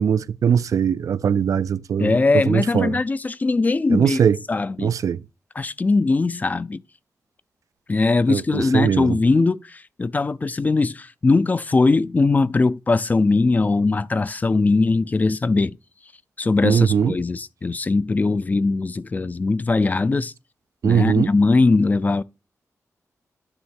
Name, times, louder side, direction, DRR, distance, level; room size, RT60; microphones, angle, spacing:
voice 1, 0.0-2.1 2.5-3.0 3.9-4.4 4.8-5.2 8.3-9.2 16.6-17.2 20.8-21.3, right 7 dB, 75° right, 0.3 m, -20 dB
voice 2, 2.0-4.9 5.6-6.8 7.9-15.8 16.4-20.3 20.8-22.2, left 3 dB, 30° left, 0.3 m, -20 dB
9.6 x 3.3 x 6.3 m
wide cardioid pair, 120°, 6 cm